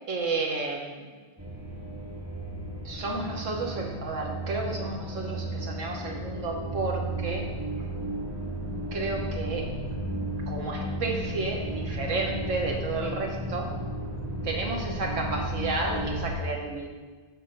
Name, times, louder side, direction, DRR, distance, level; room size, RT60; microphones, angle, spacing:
voice 1, 0.1-1.0 2.8-7.5 8.9-10.0 10.5-13.7 14.4-16.9, right 3 dB, 90° right, 1 dB, 1.5 m, -32 dB
sound 1, 1.4-16.4, right 1 dB, 15° right, 0.9 m, -34 dB
6.1 x 6.1 x 5.2 m, 1.4 s
omnidirectional pair, 1.3 m